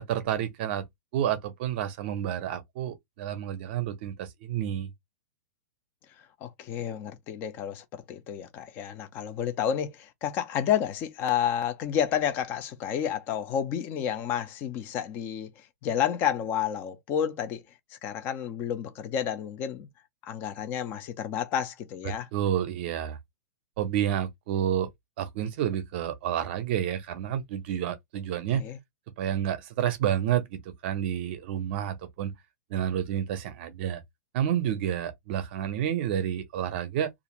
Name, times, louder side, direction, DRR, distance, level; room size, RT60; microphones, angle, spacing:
voice 1, 0.1-0.9 1.1-4.9 22.3-23.2 23.8-24.9 25.2-28.6 29.2-32.3 32.7-34.0 34.3-37.1, right 10 dB, 40° right, 0.6 m, -29 dB
voice 2, 6.4-17.6 17.9-19.9 20.2-22.3 28.5-28.8, left 9 dB, 20° left, 0.4 m, -30 dB
2.5 x 2.4 x 2.9 m
supercardioid pair, 170°, 9 cm